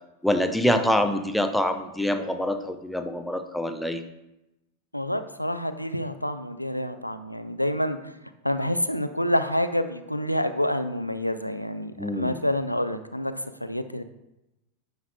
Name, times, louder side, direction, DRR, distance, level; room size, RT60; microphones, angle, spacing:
voice 1, 0.2-4.0 12.0-12.4, left 1 dB, ahead, 7 dB, 0.6 m, -25 dB
voice 2, 4.9-8.1 8.4-13.3 13.6-14.0, left 1 dB, 90° left, 10 dB, 0.3 m, -27 dB
9.3 x 5.9 x 2.2 m, 0.93 s
figure-of-eight pair, 90°, 0 cm